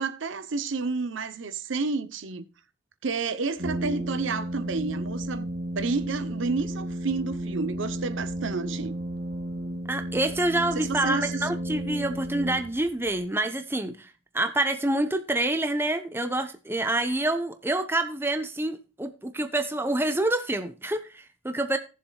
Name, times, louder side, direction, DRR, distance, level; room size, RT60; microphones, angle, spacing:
voice 1, 0.0-2.5 3.0-9.0 10.7-11.5, right 4 dB, 65° right, 0.7 m, -30 dB
Brass instrument, 3.6-13.1, right 1 dB, 45° right, 2.7 m, -33 dB
voice 2, 9.9-21.8, right 1 dB, 10° right, 0.7 m, -27 dB
18.5 x 7.1 x 2.3 m
head